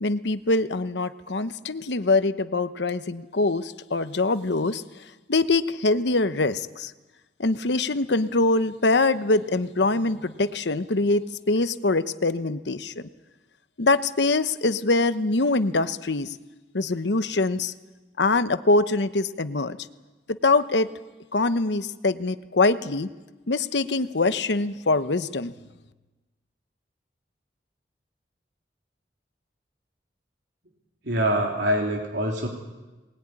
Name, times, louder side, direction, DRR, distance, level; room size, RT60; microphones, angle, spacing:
voice 1, 0.0-4.8 5.3-6.9 7.4-12.9 13.8-16.3 16.7-17.7 18.2-19.8 20.3-20.9 21.3-23.1 23.5-25.5, left 3 dB, 80° left, 12 dB, 1.0 m, -23 dB
voice 2, 31.0-32.5, right 1 dB, 90° right, 0 dB, 3.3 m, -24 dB
21.0 x 20.0 x 9.8 m, 1.2 s
head